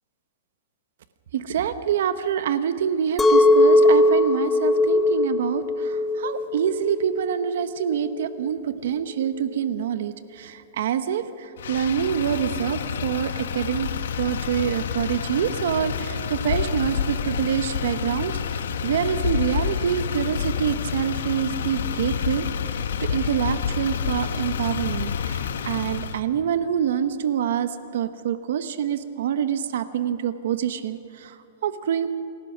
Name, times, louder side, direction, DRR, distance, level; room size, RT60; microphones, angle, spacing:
voice 1, 1.3-13.9 14.1-32.1, right 8 dB, 60° right, 11 dB, 0.9 m, -26 dB
Chink clink, 3.2-8.4, left 2 dB, 5° left, 0.7 m, -20 dB
Motor vehicle (road), 11.6-26.2, left 7 dB, 80° left, 1.2 m, -28 dB
27.0 x 17.0 x 6.1 m, 2.8 s
supercardioid pair, 175°, 0 cm